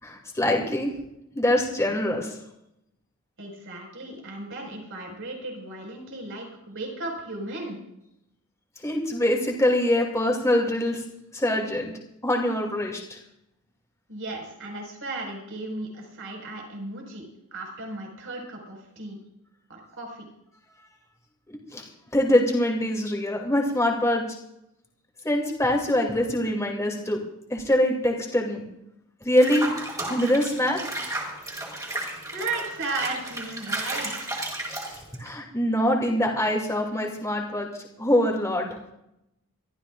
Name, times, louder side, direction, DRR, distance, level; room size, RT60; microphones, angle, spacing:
voice 1, 0.0-0.9 1.3-2.4 8.8-11.0 11.3-11.9 12.2-13.2 21.7-21.9 22.1-24.2 25.2-27.2 27.5-28.6 29.2-29.7 30.1-30.8 34.9-37.7 38.0-38.7, left 1 dB, 15° left, -1 dB, 2.7 m, -24 dB
voice 2, 3.4-7.8 14.1-17.2 17.5-19.2 19.7-20.3 32.3-34.5, right 2 dB, 60° right, 1 dB, 5.3 m, -35 dB
Water / Bathtub (filling or washing), 29.4-35.3, right 1 dB, 15° right, 4.3 m, -33 dB
25.0 x 14.0 x 2.5 m, 0.82 s
head